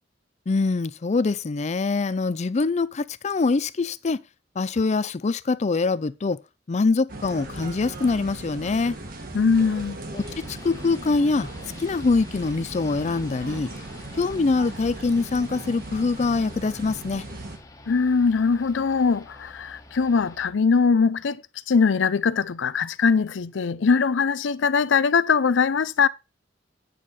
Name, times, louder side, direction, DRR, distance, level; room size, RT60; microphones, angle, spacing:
voice 1, 0.5-4.2 4.6-6.4 6.7-9.0 10.1-11.5 11.8-13.7 14.1-17.2, left 3 dB, 40° left, 0.4 m, -24 dB
sound 1, 7.1-17.6, right 2 dB, 50° right, 1.6 m, -38 dB
voice 2, 9.3-10.0 17.9-21.4 21.7-26.1, left 5 dB, 90° left, 0.5 m, -21 dB
sound 2, 10.1-20.5, left 2 dB, 20° left, 1.3 m, -47 dB
9.3 x 6.4 x 4.2 m
head